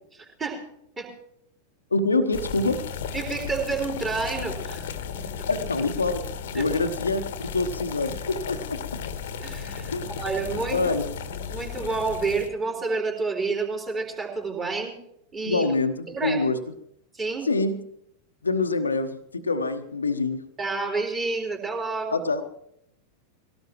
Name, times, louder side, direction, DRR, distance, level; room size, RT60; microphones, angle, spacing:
voice 1, 0.1-0.6 1.0-1.1 3.1-4.9 5.1-5.5 6.5-6.7 9.4-10.9 11.3-14.9 15.3-15.7 16.1-16.4 17.1-17.5 20.6-22.2, right 4 dB, 20° right, 0 dB, 4.0 m, -29 dB
voice 2, 1.9-2.8 5.5-6.2 6.5-9.0 9.9-10.0 10.7-11.1 15.4-16.6 17.4-17.8 18.4-20.4 22.1-22.4, left 3 dB, 75° left, 8 dB, 1.0 m, -25 dB
sound 1, 2.3-12.5, left 6 dB, 55° left, 1.2 m, -35 dB
21.5 x 17.5 x 3.1 m, 0.76 s
figure-of-eight pair, 90°, 0 cm